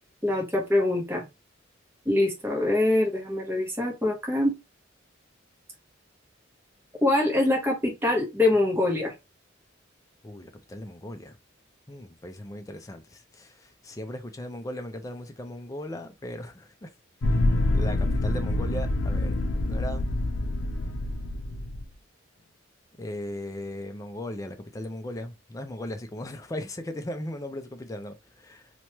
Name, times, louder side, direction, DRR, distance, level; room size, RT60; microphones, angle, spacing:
voice 1, 0.2-1.2 2.1-4.6 7.0-9.1, left 2 dB, 10° right, 0.7 m, -24 dB
voice 2, 10.2-11.4 11.9-16.9 17.3-17.4 17.7-20.1 23.0-28.7, left 1 dB, 15° left, 0.3 m, -37 dB
sound 1, 17.2-21.8, left 2 dB, 80° left, 0.5 m, -26 dB
2.9 x 2.2 x 2.9 m
head